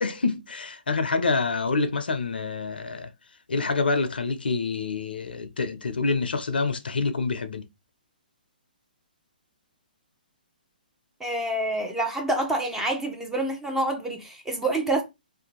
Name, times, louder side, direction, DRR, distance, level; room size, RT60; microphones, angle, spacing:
voice 1, 0.0-3.1 3.5-7.6, left 4 dB, 80° left, 0.5 m, -27 dB
voice 2, 11.2-15.0, right 1 dB, 5° right, 0.6 m, -27 dB
2.6 x 2.1 x 2.9 m
hypercardioid pair, 135°, 5 cm